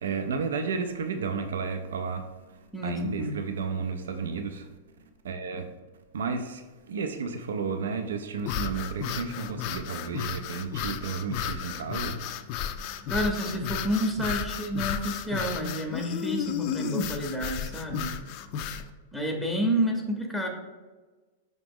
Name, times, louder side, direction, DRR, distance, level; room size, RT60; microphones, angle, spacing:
voice 1, 0.0-4.7 5.2-5.7 6.1-12.2, right 5 dB, 90° right, 7 dB, 0.4 m, -32 dB
voice 2, 2.7-3.4 13.1-18.1 19.1-20.5, right 1 dB, ahead, 2 dB, 0.6 m, -29 dB
sound 1, 8.4-18.9, left 8 dB, 50° left, 0.3 m, -33 dB
5.0 x 3.0 x 3.5 m, 1.3 s
hypercardioid pair, 135°, 0 cm